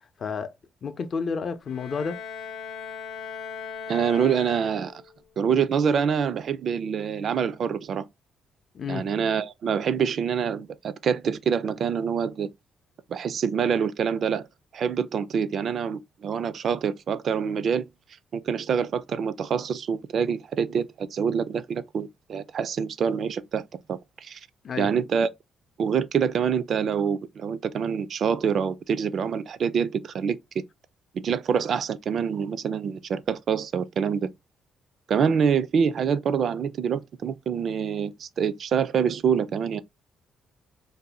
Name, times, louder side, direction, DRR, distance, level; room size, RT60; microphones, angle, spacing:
voice 1, 0.2-0.5 0.8-2.2 8.7-9.1 24.6-24.9, left 5 dB, 50° left, 0.5 m, -30 dB
Bowed string instrument, 1.7-5.2, left 6 dB, 90° left, 0.7 m, -38 dB
voice 2, 3.9-5.0 5.4-8.1 8.9-12.5 13.1-14.5 14.7-17.9 18.3-23.6 23.9-24.4 24.8-25.3 25.8-30.6 31.1-34.3 35.1-39.8, right 7 dB, 60° right, 0.3 m, -26 dB
2.6 x 2.2 x 4.0 m
cardioid pair, 90°, 0 cm